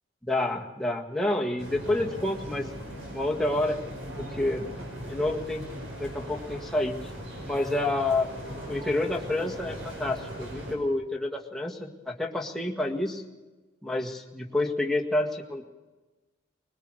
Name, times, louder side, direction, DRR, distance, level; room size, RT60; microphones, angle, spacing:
voice 1, 0.2-2.7 3.1-3.8 4.2-4.7 5.1-5.6 6.0-7.1 7.4-8.3 8.7-13.2 13.8-15.6, left 2 dB, ahead, -1 dB, 1.8 m, -28 dB
sound 1, 1.6-10.7, equal, 70° right, 5.5 m, -39 dB
21.0 x 21.0 x 6.4 m, 1.2 s
head